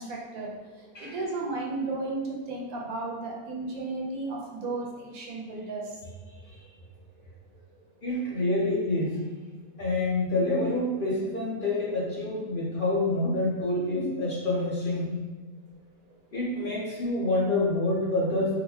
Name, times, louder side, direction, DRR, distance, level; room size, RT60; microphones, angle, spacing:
voice 1, 0.0-6.1 6.8-6.9 7.7-7.8, right 3 dB, 75° right, -1 dB, 1.1 m, -34 dB
voice 2, 8.0-9.2 9.8-15.2 16.3-18.5, left 2 dB, 50° left, -5 dB, 0.6 m, -27 dB
4.0 x 2.1 x 2.8 m, 1.3 s
omnidirectional pair, 1.6 m